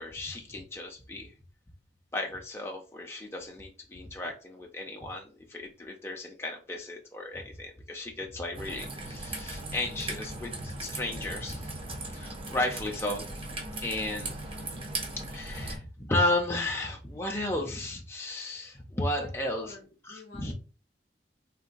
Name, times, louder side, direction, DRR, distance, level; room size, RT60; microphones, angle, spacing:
voice 1, 0.0-1.3 2.1-11.8 12.1-13.2 13.8-14.3 15.3-19.7 20.1-20.5, left 1 dB, 15° left, 0.5 m, -34 dB
Raindrop / Trickle dribble, 8.6-15.8, right 2 dB, 30° right, 0.6 m, -38 dB
voice 2, 14.6-15.0 19.1-20.5, left 2 dB, 60° left, 0.6 m, -47 dB
3.8 x 2.1 x 2.5 m
head